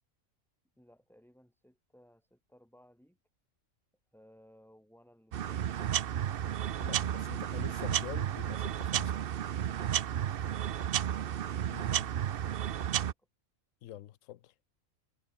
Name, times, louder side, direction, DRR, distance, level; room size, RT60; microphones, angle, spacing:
voice 1, 0.8-3.2 4.1-5.7 6.9-7.1 9.7-13.3, equal, ahead, 7.6 m, -62 dB
sound 1, 5.3-13.1, right 10 dB, 55° right, 0.7 m, -32 dB
voice 2, 6.7-9.2 11.7-12.1 13.8-14.5, left 13 dB, 75° left, 1.0 m, -46 dB
omnidirectional pair, 1.4 m